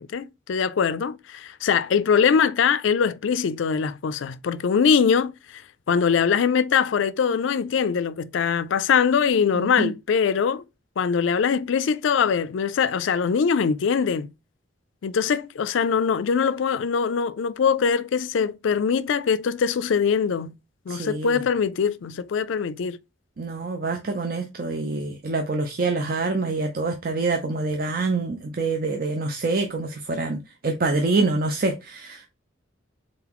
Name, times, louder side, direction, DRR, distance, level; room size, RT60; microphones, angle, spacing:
voice 1, 0.0-5.6 5.9-10.6 11.0-14.3 15.0-20.6 20.9-23.0, left 6 dB, 70° left, 0.4 m, -22 dB
voice 2, 9.5-9.9 20.9-21.4 23.4-32.3, right 3 dB, 45° right, 0.5 m, -26 dB
3.9 x 3.8 x 2.9 m
head